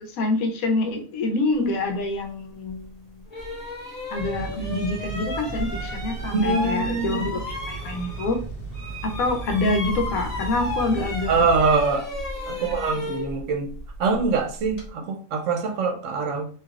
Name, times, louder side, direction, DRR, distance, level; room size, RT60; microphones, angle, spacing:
voice 1, 0.0-3.3 4.1-8.4 9.0-11.4 12.5-13.0, left 2 dB, 90° left, 1.1 m, -26 dB
sound 1, 2.7-2.8 3.3-8.5 8.7-14.9, left 1 dB, 30° left, 1.2 m, -33 dB
sound 2, 4.2-11.7, right 2 dB, 45° left, 1.0 m, -35 dB
voice 2, 6.3-7.2 11.3-12.1 12.5-13.7 14.0-16.5, right 4 dB, 70° right, 0.9 m, -24 dB
3.2 x 2.7 x 2.3 m
omnidirectional pair, 1.4 m